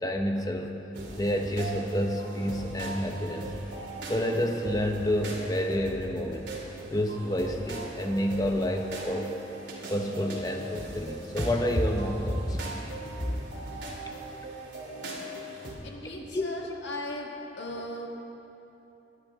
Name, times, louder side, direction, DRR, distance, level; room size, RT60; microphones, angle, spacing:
voice 1, 0.0-0.8 1.2-3.5 4.1-6.5 6.9-9.3 9.9-12.6 13.3-13.4 16.1-16.5, equal, 20° left, 3 dB, 0.9 m, -29 dB
sound 1, 0.9-15.7, right 2 dB, 80° right, 2.6 m, -40 dB
voice 2, 15.8-18.1, left 1 dB, 80° left, 0 dB, 1.7 m, -38 dB
19.0 x 11.0 x 3.6 m, 3.0 s
head